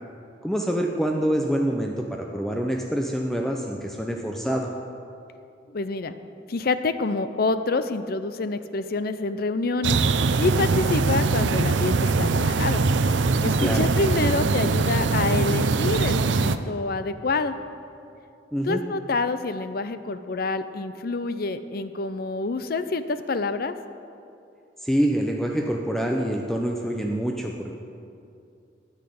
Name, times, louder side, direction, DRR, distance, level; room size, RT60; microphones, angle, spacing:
voice 1, 0.4-4.7 13.6-13.9 18.5-18.8 24.8-27.7, equal, ahead, 1 dB, 0.7 m, -26 dB
voice 2, 5.7-6.1 6.5-10.0 10.4-12.8 13.4-17.6 18.6-23.7, left 3 dB, 55° left, 11 dB, 0.6 m, -27 dB
sound 1, 9.8-16.6, right 4 dB, 80° right, 0.6 m, -22 dB
10.0 x 9.8 x 8.6 m, 2.6 s
head